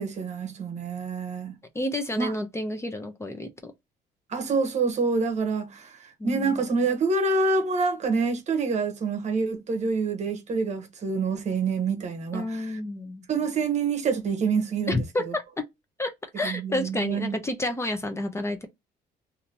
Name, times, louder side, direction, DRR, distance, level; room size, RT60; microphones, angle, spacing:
voice 1, 0.0-1.5 2.2-2.3 4.3-12.6 13.3-15.0 16.4-17.4, right 4 dB, 45° right, 1.0 m, -27 dB
voice 2, 1.7-3.7 6.2-6.6 12.3-13.2 14.9-15.6 16.0-18.7, left 1 dB, 15° left, 0.8 m, -30 dB
2.9 x 2.7 x 2.6 m
cardioid pair, 110°, 17 cm